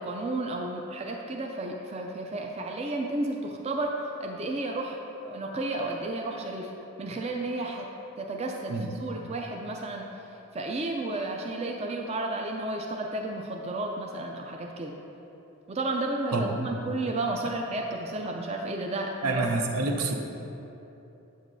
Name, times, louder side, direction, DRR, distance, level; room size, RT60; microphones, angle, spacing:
voice 1, 0.0-4.0 4.2-5.0 5.2-6.7 7.0-7.9 8.2-10.0 10.5-14.9 15.7-19.4 19.8-20.1, right 2 dB, 30° right, 1 dB, 0.3 m, -32 dB
voice 2, 16.3-16.7 17.4-17.5 19.2-20.2, right 3 dB, 85° right, 3 dB, 0.7 m, -27 dB
7.8 x 7.3 x 2.6 m, 3.0 s
head